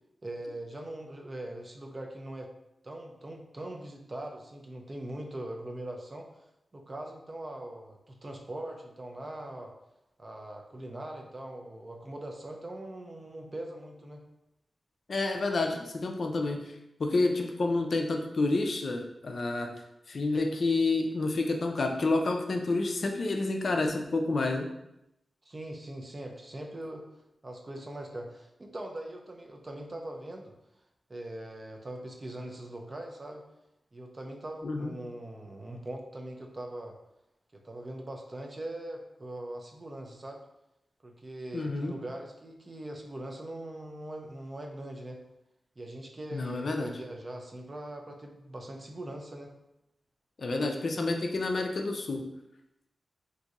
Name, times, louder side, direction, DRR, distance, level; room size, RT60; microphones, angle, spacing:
voice 1, 0.2-2.5 2.8-6.3 6.7-9.7 10.2-14.2 25.5-27.1 27.4-30.5 31.1-33.4 33.9-37.0 37.5-40.4 41.0-45.2 45.8-49.5, right 1 dB, 25° right, 2 dB, 0.4 m, -41 dB
voice 2, 15.1-16.7 17.0-19.7 20.1-24.7 34.6-34.9 41.5-41.9 46.3-46.9 50.4-52.2, left 3 dB, 50° left, 3 dB, 0.4 m, -29 dB
2.6 x 2.4 x 4.0 m, 0.85 s
wide cardioid pair, 160°, 0 cm